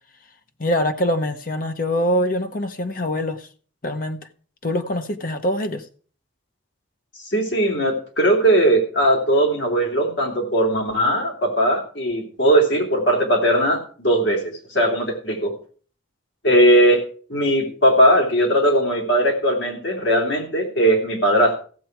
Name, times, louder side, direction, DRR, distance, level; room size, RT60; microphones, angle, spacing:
voice 1, 0.6-3.5 3.8-4.2 4.6-5.9, equal, 45° left, 1.0 m, -24 dB
voice 2, 7.2-15.5 16.4-17.0 17.3-21.5, right 1 dB, 70° left, 3.0 m, -19 dB
15.0 x 7.6 x 4.6 m
head